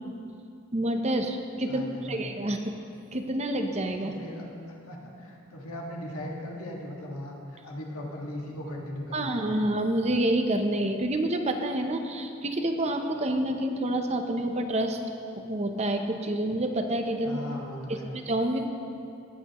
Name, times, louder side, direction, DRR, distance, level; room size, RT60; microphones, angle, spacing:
voice 1, 0.7-2.7 3.1-4.2 9.1-15.0 15.4-17.4 17.9-18.7, right 1 dB, 30° right, 5 dB, 0.7 m, -28 dB
voice 2, 1.7-2.3 4.0-9.6 17.2-18.1, left 1 dB, 90° left, -1 dB, 1.8 m, -38 dB
18.5 x 8.6 x 3.0 m, 2.6 s
head